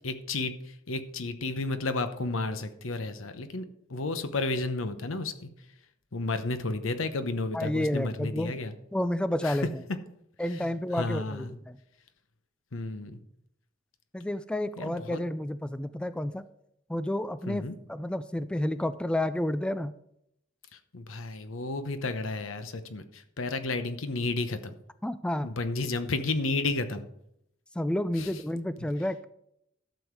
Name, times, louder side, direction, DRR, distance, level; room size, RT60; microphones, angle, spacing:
voice 1, 0.0-3.6 3.9-5.5 6.1-8.7 9.4-9.6 10.5-11.6 12.7-13.2 14.8-15.2 17.5-17.8 20.7-24.8 25.4-27.1 28.2-28.3, left 3 dB, 85° left, 10 dB, 1.0 m, -32 dB
voice 2, 7.5-8.5 8.9-9.7 10.4-11.8 14.1-16.5 16.9-17.6 17.9-19.9 25.0-25.5 27.8-29.2, left 1 dB, 5° left, 14 dB, 0.3 m, -30 dB
12.0 x 7.1 x 4.6 m, 0.77 s
head